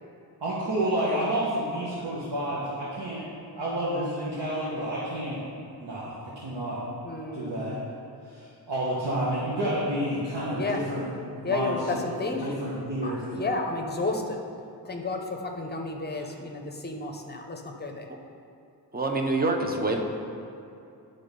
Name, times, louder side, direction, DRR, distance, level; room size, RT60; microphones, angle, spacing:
voice 1, 0.4-3.2 3.5-5.4 5.8-6.8 7.3-7.8 8.3-11.1 11.4-12.1 12.4-13.5 15.6-15.7 16.1-16.3, right 1 dB, 75° right, -8 dB, 1.5 m, -30 dB
voice 2, 7.0-7.9 10.5-10.8 11.4-12.5 13.0-14.4 14.8-18.1, left 3 dB, 25° left, 3 dB, 0.7 m, -32 dB
voice 3, 18.9-20.0, right 2 dB, 20° right, 3 dB, 0.7 m, -26 dB
10.0 x 3.9 x 5.2 m, 2.6 s
wide cardioid pair, 170°, 42 cm